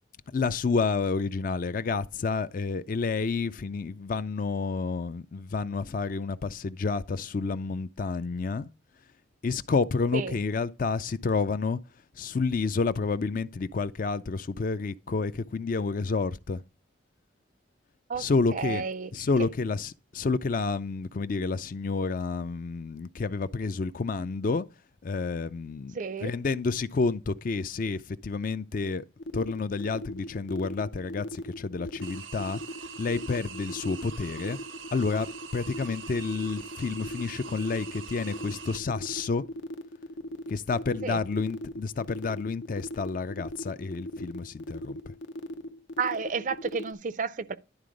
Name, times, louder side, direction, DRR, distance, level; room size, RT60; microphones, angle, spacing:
voice 1, 0.3-8.7 9.4-11.8 12.2-16.6 18.2-18.8 19.1-24.7 25.0-26.0 26.2-29.0 29.3-32.6 33.0-34.6 34.9-35.3 35.5-39.4 40.5-45.0, left 4 dB, 45° left, 0.4 m, -29 dB
voice 2, 18.1-19.1 19.4-19.5 25.9-26.3 41.0-41.2 46.0-47.6, right 5 dB, 40° right, 0.4 m, -31 dB
sound 1, 29.2-46.9, equal, 75° left, 0.7 m, -38 dB
sound 2, 32.0-38.8, right 7 dB, 80° right, 0.6 m, -44 dB
11.0 x 3.8 x 5.0 m
head